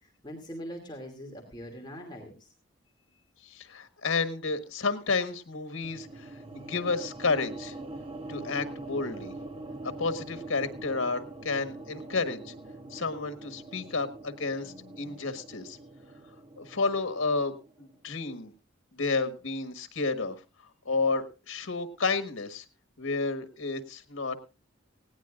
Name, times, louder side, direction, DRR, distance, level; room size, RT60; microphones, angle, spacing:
voice 1, 0.0-2.3 14.4-15.3, equal, 20° left, 1 dB, 2.6 m, -43 dB
voice 2, 3.4-7.7 8.3-9.3 10.0-12.5 12.9-15.8 16.6-18.5 19.0-20.4 20.8-22.6 23.0-24.4, left 4 dB, 90° left, 9 dB, 1.5 m, -31 dB
sound 1, 5.8-18.1, right 2 dB, 30° right, 1.1 m, -43 dB
18.5 x 17.0 x 2.5 m, 0.31 s
head